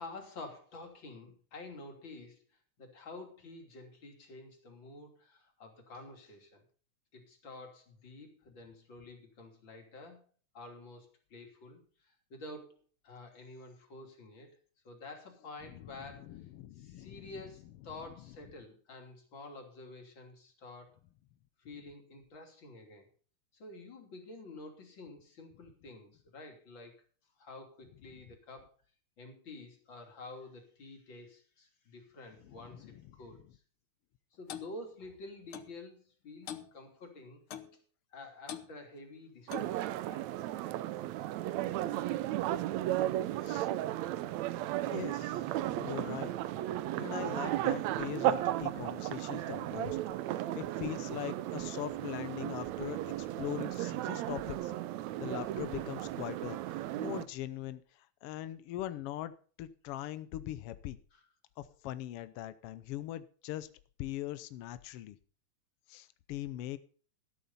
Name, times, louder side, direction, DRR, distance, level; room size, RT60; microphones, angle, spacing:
voice 1, 0.0-2.4 2.8-6.6 7.1-10.3 10.5-12.7 13.0-14.6 14.9-16.4 16.7-21.0 21.6-23.1 23.5-27.0 27.4-28.7 29.2-33.6 34.4-37.4 38.1-40.3 61.1-61.3, left 2 dB, 40° left, 2 dB, 3.6 m, -49 dB
voice 2, 15.7-17.3 32.4-33.1 43.4-43.7 44.8-45.4 45.8-46.3 47.0-50.0 50.5-54.7 55.2-59.3 59.6-61.0 61.6-63.7 64.0-65.2 65.9-66.8, left 13 dB, 85° left, 14 dB, 1.3 m, -41 dB
Clock, 34.5-34.7 35.5-35.7 36.5-36.7 37.5-37.7 38.5-38.7 39.5-39.8, left 10 dB, 65° left, 1.4 m, -42 dB
sound 1, 39.5-57.3, right 14 dB, 75° right, 1.9 m, -35 dB
12.5 x 12.5 x 4.1 m, 0.41 s
omnidirectional pair, 3.4 m